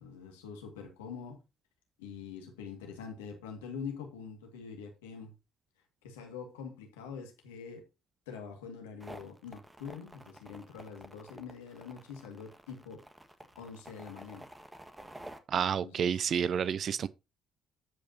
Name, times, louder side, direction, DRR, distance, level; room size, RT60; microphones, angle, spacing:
voice 1, 0.0-1.4 2.0-5.3 6.0-7.8 8.3-13.0 13.6-14.5 15.5-16.2, left 6 dB, 85° left, 2.2 m, -44 dB
sound 1, 9.0-15.4, right 1 dB, 15° right, 1.7 m, -50 dB
voice 2, 15.5-17.1, right 8 dB, 55° right, 0.4 m, -30 dB
15.0 x 5.2 x 2.8 m
hypercardioid pair, 50°, 0 cm